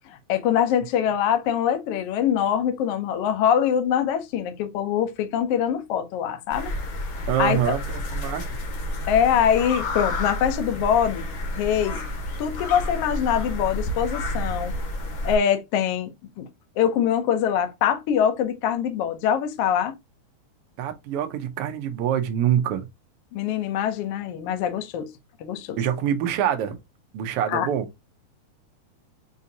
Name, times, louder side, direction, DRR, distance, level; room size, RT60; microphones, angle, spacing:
voice 1, 0.1-6.7 7.4-7.8 9.1-11.3 11.6-12.0 12.4-14.7 15.2-16.1 16.4-16.5 16.8-20.0 23.3-25.1 25.4-25.8 27.5-27.7, left 9 dB, 90° left, 1.3 m, -23 dB
sound 1, 6.5-15.4, left 1 dB, 65° left, 1.2 m, -30 dB
voice 2, 7.3-8.4 20.8-22.8 25.8-26.8 27.1-27.9, right 10 dB, 85° right, 1.3 m, -25 dB
6.0 x 2.7 x 2.7 m
omnidirectional pair, 3.6 m